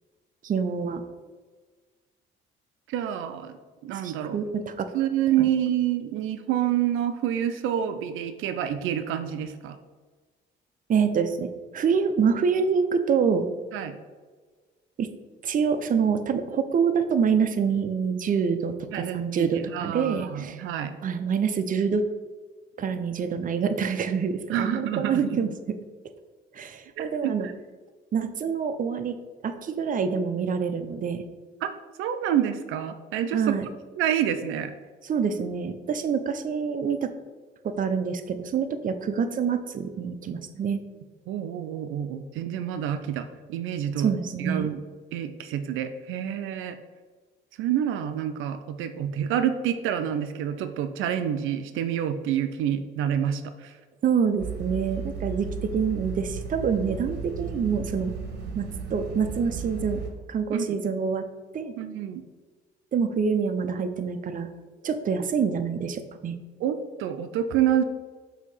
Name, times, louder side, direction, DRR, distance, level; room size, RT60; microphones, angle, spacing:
voice 1, 0.4-1.0 4.0-4.9 5.4-5.5 10.9-13.5 15.0-15.1 15.4-20.6 21.0-22.0 22.8-25.5 26.5-27.5 28.1-29.2 29.4-31.2 33.3-33.7 35.0-37.1 37.6-40.8 44.0-44.7 54.0-58.1 58.5-60.0 60.3-61.2 61.5-61.7 62.9-64.5 64.8-66.4, right 6 dB, 45° right, 8 dB, 0.6 m, -26 dB
voice 2, 2.9-3.6 3.8-4.4 4.9-9.8 13.7-14.0 18.9-21.0 24.5-25.4 27.0-27.5 31.6-31.7 32.0-33.5 34.0-34.7 41.3-44.1 44.4-44.8 45.1-46.8 47.6-53.7 60.5-60.8 61.8-62.3 66.6-67.8, right 10 dB, 90° right, 9 dB, 0.4 m, -28 dB
sound 1, 54.4-60.1, right 5 dB, 60° right, 1.1 m, -35 dB
6.2 x 2.8 x 5.4 m, 1.4 s
cardioid pair, 90°, 20 cm